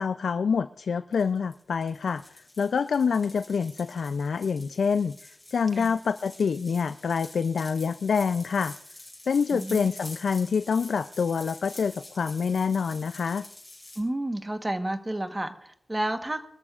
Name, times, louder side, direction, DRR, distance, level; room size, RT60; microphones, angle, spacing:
voice 1, 0.0-2.2 2.6-5.2 5.5-8.7 9.3-13.4, left 6 dB, 75° left, 11 dB, 0.4 m, -26 dB
sound 1, 1.1-14.0, left 1 dB, 10° left, 6.1 m, -47 dB
voice 2, 9.5-9.9 14.0-16.5, right 1 dB, 15° right, 7 dB, 1.2 m, -31 dB
25.0 x 13.5 x 2.5 m, 0.69 s
wide cardioid pair, 125°, 0 cm